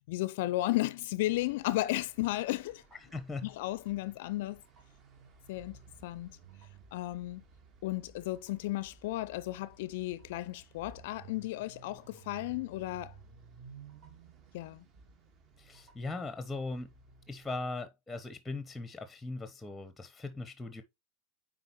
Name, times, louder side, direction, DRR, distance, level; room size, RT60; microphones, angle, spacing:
voice 1, 0.0-2.8 3.4-4.6 5.5-6.4 6.9-7.4 7.8-13.1 14.5-14.8, left 17 dB, 60° left, 0.4 m, -34 dB
sound 1, 1.3-17.6, right 5 dB, 40° right, 1.3 m, -56 dB
voice 2, 2.9-3.5 15.6-16.9 17.3-20.8, left 3 dB, 5° left, 0.8 m, -39 dB
9.1 x 3.8 x 2.9 m
hypercardioid pair, 90°, 0 cm